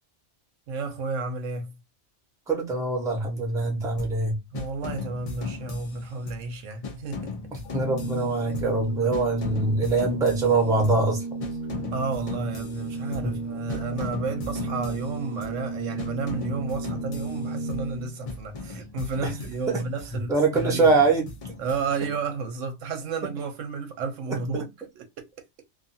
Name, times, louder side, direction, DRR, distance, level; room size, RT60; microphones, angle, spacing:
voice 1, 0.7-1.8 4.5-7.3 8.9-9.1 11.9-20.9 21.6-24.7 24.9-25.1, right 4 dB, 80° right, 1.0 m, -32 dB
voice 2, 2.5-4.4 7.7-11.2 13.2-13.4 19.2-19.3 19.7-19.8 20.3-21.3 24.3-24.4, right 3 dB, 5° right, 0.7 m, -23 dB
sound 1, 4.0-4.3 4.5-6.5 6.8-8.9 9.1-11.1 11.4-13.4 13.7-15.6 16.0-18.0 18.3-20.2 20.5-22.2, left 3 dB, 45° left, 0.4 m, -38 dB
Organ, 7.6-18.4, right 3 dB, 80° left, 1.0 m, -34 dB
2.5 x 2.4 x 2.6 m
omnidirectional pair, 1.3 m